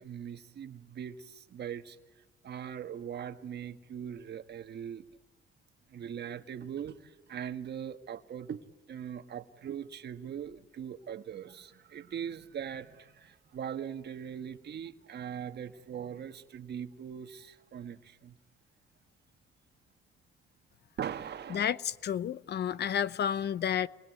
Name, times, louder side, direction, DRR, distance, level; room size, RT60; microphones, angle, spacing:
voice 1, 0.0-5.0 5.9-8.6 8.9-18.4 21.0-21.7, right 8 dB, 60° right, 1.6 m, -41 dB
voice 2, 21.5-23.9, left 9 dB, 55° left, 0.8 m, -31 dB
28.0 x 22.0 x 9.3 m
cardioid pair, 90°, 20 cm